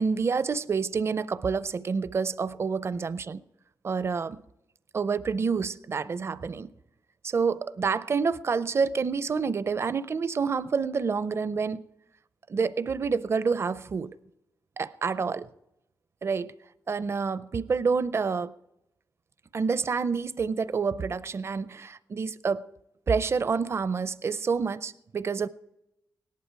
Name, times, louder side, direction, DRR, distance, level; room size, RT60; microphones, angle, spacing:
voice 1, 0.0-3.4 3.8-4.4 4.9-6.7 7.2-11.8 12.5-14.1 14.8-15.5 16.2-16.5 16.9-18.5 19.5-22.6 23.1-25.5, right 5 dB, 40° right, 0.5 m, -28 dB
18.0 x 11.5 x 4.6 m
wide cardioid pair, 120°, 7 cm